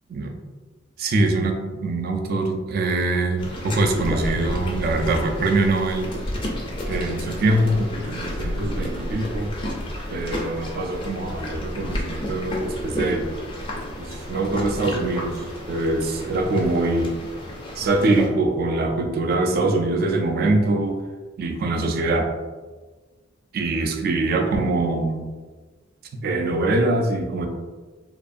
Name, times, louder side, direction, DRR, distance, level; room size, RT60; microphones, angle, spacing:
voice 1, 1.0-6.1 6.9-9.5 10.1-13.3 14.0-17.1 17.8-21.0 21.4-22.3 23.5-25.3 26.2-27.5, right 2 dB, 50° right, 4 dB, 0.3 m, -23 dB
sound 1, 3.4-18.3, equal, 25° left, 0.4 m, -31 dB
2.4 x 2.4 x 2.5 m, 1.3 s
head